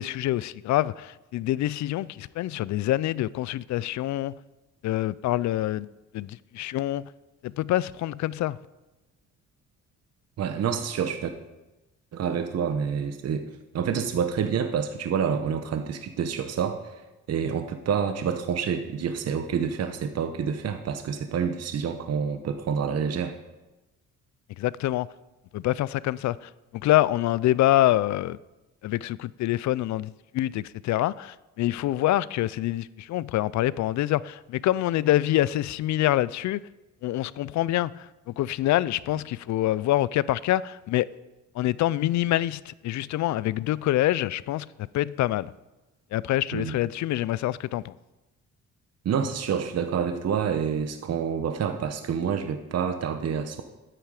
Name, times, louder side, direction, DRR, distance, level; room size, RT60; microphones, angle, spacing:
voice 1, 0.0-4.4 4.8-5.9 6.1-7.1 7.4-8.6 24.6-25.1 25.5-26.5 26.8-28.4 28.8-36.6 37.0-41.1 41.6-44.7 44.9-45.5 46.1-47.9, left 14 dB, 70° left, 0.5 m, -26 dB
voice 2, 10.4-11.3 12.1-13.5 13.7-17.0 17.3-23.3 46.5-46.8 49.0-53.6, right 7 dB, 55° right, 0.9 m, -28 dB
12.5 x 9.1 x 4.9 m
cardioid pair, 90°, 30 cm